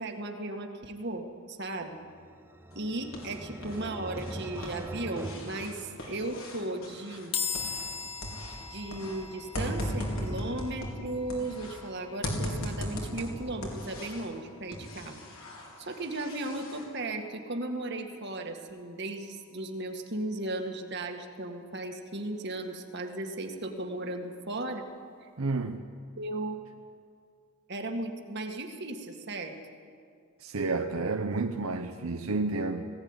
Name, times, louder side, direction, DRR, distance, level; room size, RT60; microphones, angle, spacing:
voice 1, 0.0-2.0 2.8-7.3 8.7-15.2 15.8-24.9 26.2-26.6 27.7-29.6, right 2 dB, 50° right, 2.0 m, -36 dB
sound 1, 2.0-6.6, right 1 dB, 10° right, 0.5 m, -43 dB
sound 2, 2.7-3.8 4.1-8.0 8.2-11.8 12.2-14.3 14.7-16.8, equal, 70° left, 4.6 m, -38 dB
sound 3, 7.3-20.7, left 6 dB, 25° left, 1.4 m, -43 dB
voice 2, 25.4-25.9 30.4-32.9, right 3 dB, 75° right, 0.9 m, -30 dB
19.5 x 17.0 x 9.9 m
head